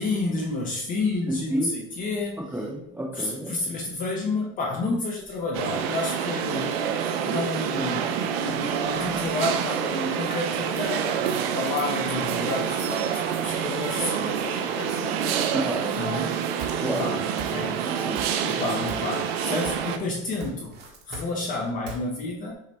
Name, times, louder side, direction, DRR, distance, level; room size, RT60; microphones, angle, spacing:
voice 1, 0.0-2.5 3.1-6.7 7.2-15.2 16.0-16.4 16.8-17.8 18.4-20.8 21.1-22.5, left 3 dB, 25° left, -1 dB, 0.5 m, -30 dB
voice 2, 1.3-1.8 2.5-3.7 14.0-14.1 15.5-16.0 16.8-17.1 17.9-18.3, right 1 dB, 5° right, -2 dB, 0.7 m, -31 dB
sound 1, 5.5-20.0, right 8 dB, 85° right, 0.6 m, -27 dB
sound 2, 16.6-17.1 17.4-17.9 18.1-18.6 18.9-19.9 20.2-22.0, right 3 dB, 35° right, 0.9 m, -39 dB
6.2 x 2.1 x 4.1 m, 0.79 s
supercardioid pair, 155°, 30 cm